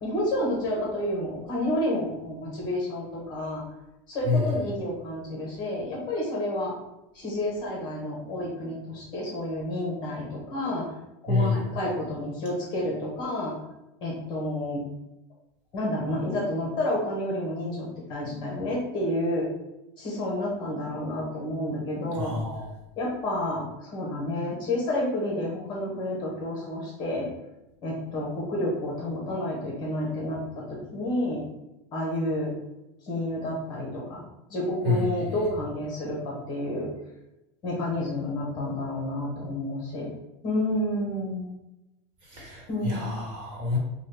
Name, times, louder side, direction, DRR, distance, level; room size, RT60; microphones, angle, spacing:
voice 1, 0.0-3.6 4.1-6.7 7.1-10.8 11.2-13.5 14.0-14.8 15.7-19.5 20.0-22.3 23.0-27.3 27.8-31.4 31.9-32.5 33.0-34.2 34.5-36.9 37.6-40.1 40.4-41.5 42.7-43.1, left 1 dB, 30° left, -2 dB, 1.1 m, -30 dB
voice 2, 4.2-4.6 11.3-11.6 22.1-22.7 34.8-35.4 42.3-43.8, left 3 dB, 35° right, -3 dB, 1.3 m, -27 dB
5.0 x 2.3 x 3.4 m, 0.93 s
supercardioid pair, 175°, 15 cm